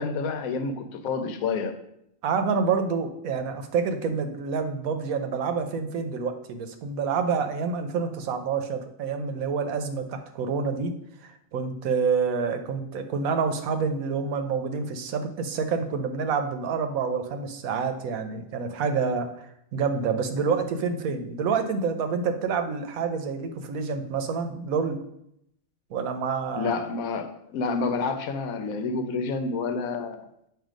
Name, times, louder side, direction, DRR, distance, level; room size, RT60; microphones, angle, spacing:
voice 1, 0.0-1.8 26.6-30.3, left 4 dB, 85° left, 8 dB, 1.1 m, -29 dB
voice 2, 2.2-10.9 11.2-19.5 19.7-25.0 25.9-26.8, right 5 dB, 90° right, 7 dB, 1.1 m, -28 dB
7.6 x 2.7 x 5.0 m, 0.78 s
omnidirectional pair, 1.4 m